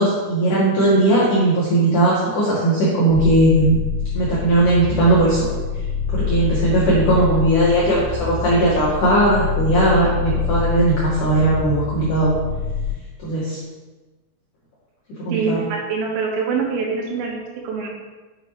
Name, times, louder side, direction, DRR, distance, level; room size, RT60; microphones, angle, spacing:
voice 1, 0.0-3.8 4.2-5.5 6.1-12.3 13.2-13.6 15.2-15.6, right 1 dB, 90° left, -8 dB, 1.8 m, -18 dB
sound 1, 3.1-12.9, left 7 dB, 55° right, 2.8 m, -26 dB
voice 2, 15.3-17.9, right 5 dB, 75° right, -1 dB, 3.7 m, -24 dB
6.8 x 6.8 x 3.1 m, 1.2 s
omnidirectional pair, 6.0 m